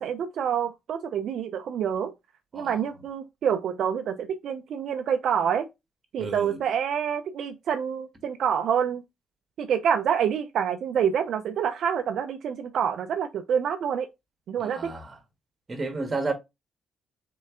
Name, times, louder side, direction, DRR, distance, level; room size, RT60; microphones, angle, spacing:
voice 1, 0.0-2.1 2.5-5.7 6.1-9.0 9.6-14.1 14.5-14.9, right 8 dB, 70° right, 0.4 m, -27 dB
voice 2, 6.2-6.6 14.6-15.1 15.7-16.3, right 3 dB, 30° right, 1.3 m, -31 dB
3.8 x 3.2 x 3.6 m
cardioid pair, 90°, 0 cm